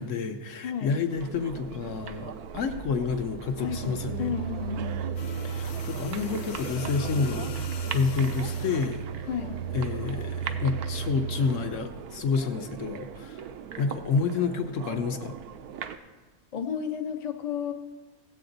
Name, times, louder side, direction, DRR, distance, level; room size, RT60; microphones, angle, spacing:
voice 1, 0.0-4.3 5.4-7.6 7.9-9.3 9.7-13.5 13.8-15.4, left 5 dB, 65° left, 7 dB, 0.9 m, -29 dB
sound 1, 1.1-16.0, right 8 dB, 85° right, 1.2 m, -40 dB
voice 2, 3.6-5.0 9.3-9.6 16.5-17.7, left 7 dB, 40° left, 5 dB, 0.6 m, -32 dB
sound 2, 3.6-11.6, right 7 dB, 60° right, 1.0 m, -34 dB
sound 3, 5.2-9.0 10.2-10.4, left 8 dB, 85° left, 1.2 m, -44 dB
16.5 x 7.7 x 3.9 m, 1.2 s
omnidirectional pair, 1.6 m